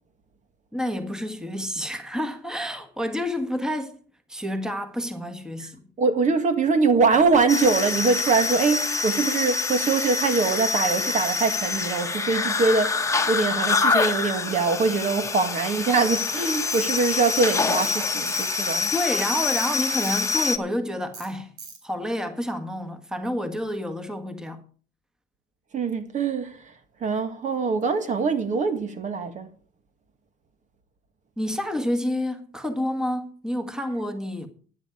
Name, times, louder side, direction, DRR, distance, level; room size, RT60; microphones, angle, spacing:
voice 1, 0.7-3.9 4.3-5.8 18.9-21.5 21.8-24.6 31.4-34.5, left 1 dB, 5° right, 1.6 m, -29 dB
voice 2, 6.0-13.0 13.3-18.9 25.7-26.6 27.0-29.5, right 4 dB, 45° right, 1.8 m, -23 dB
sound 1, 7.5-20.6, left 4 dB, 15° left, 1.3 m, -26 dB
Tools, 16.7-16.9 17.8-18.0 18.3-18.5 19.4-19.7 20.0-20.2 21.1-21.3 21.6-21.8, right 5 dB, 85° right, 4.0 m, -40 dB
13.0 x 10.0 x 5.0 m
cardioid pair, 110°, 17 cm